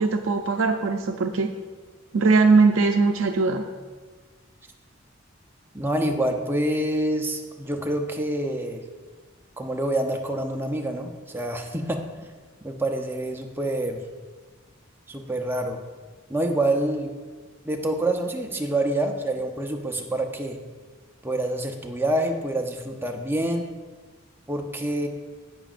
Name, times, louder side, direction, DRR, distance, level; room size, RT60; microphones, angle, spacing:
voice 1, 0.0-1.5 2.1-3.7, right 4 dB, 80° right, 4 dB, 0.5 m, -20 dB
voice 2, 5.7-8.8 9.6-12.0 12.6-14.1 15.1-15.8 16.3-17.1 17.6-20.6 21.2-23.6 24.5-25.1, right 1 dB, 10° right, 3 dB, 0.7 m, -27 dB
16.0 x 6.1 x 2.5 m, 1.4 s
head